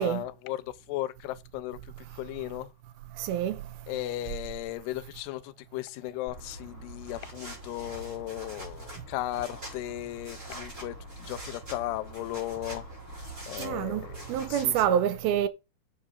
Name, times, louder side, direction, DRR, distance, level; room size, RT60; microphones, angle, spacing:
voice 1, 0.0-2.7 3.9-12.9 13.5-14.7, left 15 dB, 80° left, 2.7 m, -36 dB
voice 2, 3.2-3.6 13.6-15.5, right 10 dB, 80° right, 2.4 m, -27 dB
sound 1, 6.3-14.9, right 1 dB, 15° right, 4.8 m, -43 dB
8.6 x 7.4 x 5.1 m
omnidirectional pair, 4.8 m